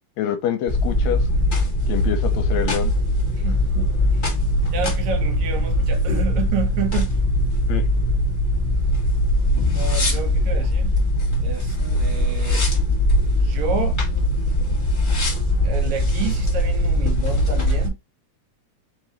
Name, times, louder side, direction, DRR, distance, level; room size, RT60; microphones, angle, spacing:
voice 1, 0.2-1.2 1.9-2.9 7.7-7.8, left 10 dB, 75° left, 1.9 m, -26 dB
sound 1, 0.7-17.9, left 1 dB, 35° left, 0.7 m, -21 dB
voice 2, 3.4-3.9 4.7-7.1 9.7-10.9 11.4-12.7 13.4-14.0 15.6-18.0, right 6 dB, 75° right, 2.2 m, -30 dB
4.5 x 2.9 x 4.0 m
omnidirectional pair, 3.3 m